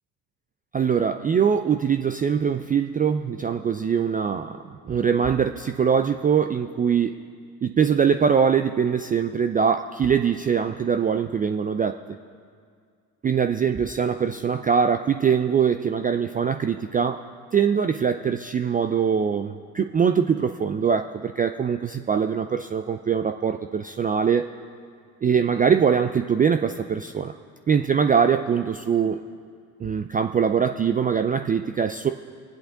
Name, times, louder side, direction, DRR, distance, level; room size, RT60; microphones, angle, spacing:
voice 1, 0.7-7.2 7.6-12.0 13.2-17.2 17.5-24.5 25.2-27.3 27.7-29.2 29.8-32.1, right 7 dB, 20° right, 7 dB, 0.3 m, -22 dB
23.5 x 8.1 x 3.8 m, 2.1 s
hypercardioid pair, 70°, 45 cm